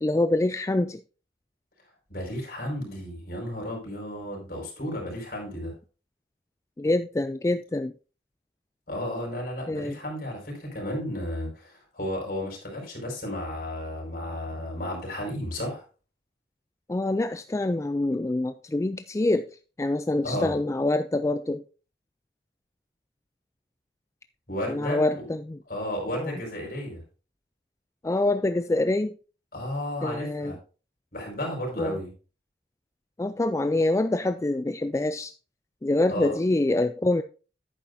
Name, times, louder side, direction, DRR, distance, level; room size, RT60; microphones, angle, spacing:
voice 1, 0.0-1.0 6.8-7.9 9.7-9.9 16.9-19.5 19.8-21.6 24.7-25.6 26.1-26.3 28.0-29.1 30.0-30.5 31.8-32.0 33.2-35.3 35.8-37.2, left 2 dB, 15° left, 10 dB, 0.3 m, -25 dB
voice 2, 2.1-5.7 8.9-15.8 20.2-20.6 24.5-25.2 25.7-27.0 29.5-30.6 31.1-32.1 36.1-36.3, left 1 dB, 55° left, -1 dB, 4.9 m, -33 dB
10.5 x 9.0 x 2.6 m, 0.35 s
head